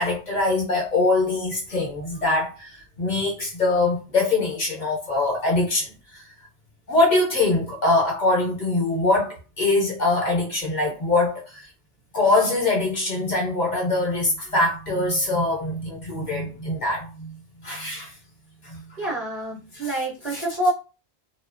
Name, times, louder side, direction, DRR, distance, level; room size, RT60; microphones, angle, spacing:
voice 1, 0.0-6.2 6.9-11.7 12.1-17.3 17.6-18.1 18.6-19.0 19.7-19.9 20.3-20.4, left 2 dB, 50° left, 0.8 m, -23 dB
voice 2, 19.0-20.7, right 1 dB, 45° right, 0.8 m, -27 dB
2.8 x 2.1 x 2.4 m
omnidirectional pair, 1.0 m